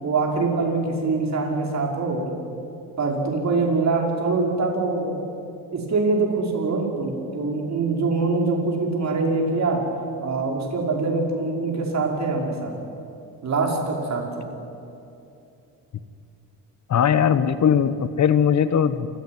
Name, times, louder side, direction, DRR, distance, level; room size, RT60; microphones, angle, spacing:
voice 1, 0.0-2.4 3.0-5.2 5.7-9.9 10.2-12.8 13.4-14.5, right 3 dB, 45° right, 1 dB, 5.4 m, -24 dB
voice 2, 16.9-19.1, left 8 dB, 50° left, 13 dB, 1.1 m, -19 dB
28.5 x 15.0 x 9.4 m, 2.7 s
cardioid pair, 105°, 37 cm